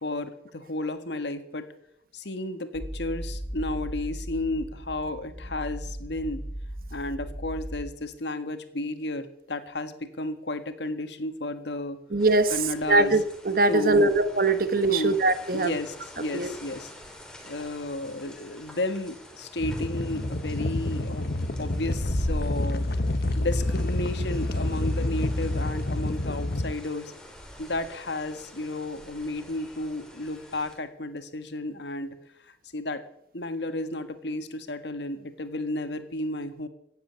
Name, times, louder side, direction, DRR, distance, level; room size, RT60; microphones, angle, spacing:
voice 1, 0.0-1.7 2.1-6.4 6.9-12.0 12.5-13.2 13.7-14.2 14.9-15.2 15.5-16.9 17.4-22.8 23.3-27.1 27.6-32.1 32.5-33.0 33.3-36.7, left 2 dB, 80° left, 9 dB, 1.7 m, -33 dB
sound 1, 2.7-7.9, equal, 20° left, 3.7 m, -37 dB
voice 2, 12.1-12.5 12.9-15.7 16.3-16.5, right 2 dB, 55° right, 11 dB, 1.2 m, -22 dB
sound 2, 12.2-30.7, equal, 5° left, 3.1 m, -43 dB
sound 3, 19.6-26.7, left 1 dB, 60° left, 1.0 m, -28 dB
16.0 x 8.0 x 9.4 m, 0.74 s
head